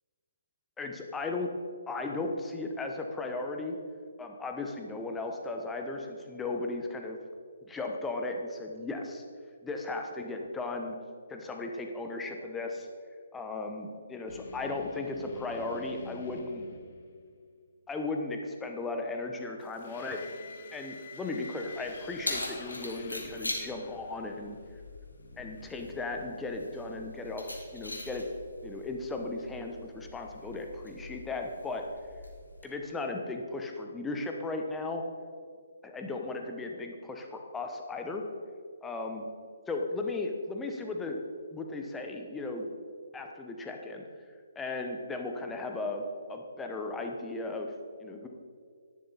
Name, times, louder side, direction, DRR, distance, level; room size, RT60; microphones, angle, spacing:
voice 1, 0.8-1.5 1.9-3.8 4.2-7.2 7.6-9.2 9.6-11.0 11.3-12.9 13.3-16.7 17.9-20.2 20.7-24.6 25.4-28.2 28.6-31.8 32.6-35.0 35.8-38.2 38.8-39.2 39.7-41.2 41.5-42.7 43.1-44.0 44.5-46.0 46.3-47.7 48.0-48.3, left 3 dB, 10° left, 3 dB, 1.0 m, -36 dB
sound 1, 14.3-17.6 19.6-26.9, left 4 dB, 50° left, 0.9 m, -49 dB
Keys jangling, 21.6-32.6, left 1 dB, 80° left, 2.0 m, -42 dB
11.5 x 10.5 x 4.1 m, 2.1 s
figure-of-eight pair, 135°, 0 cm